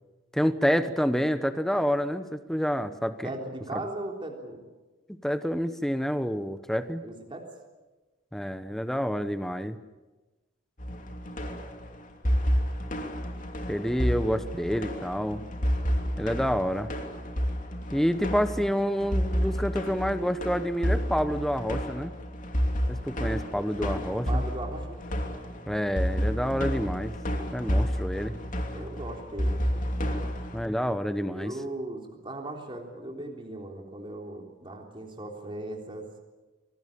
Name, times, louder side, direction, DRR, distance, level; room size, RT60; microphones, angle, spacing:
voice 1, 0.3-3.3 5.2-7.0 8.3-9.8 13.7-15.4 16.2-16.9 17.9-22.1 22.9-24.4 25.7-27.1 27.5-28.4 30.5-31.5, equal, ahead, 11 dB, 1.0 m, -28 dB
voice 2, 3.2-4.6 7.0-7.5 24.3-24.9 28.7-29.6 31.2-36.0, right 1 dB, 25° right, 1 dB, 3.5 m, -38 dB
sound 1, 10.8-30.7, equal, 40° left, 2.9 m, -30 dB
25.5 x 19.5 x 8.7 m, 1.2 s
head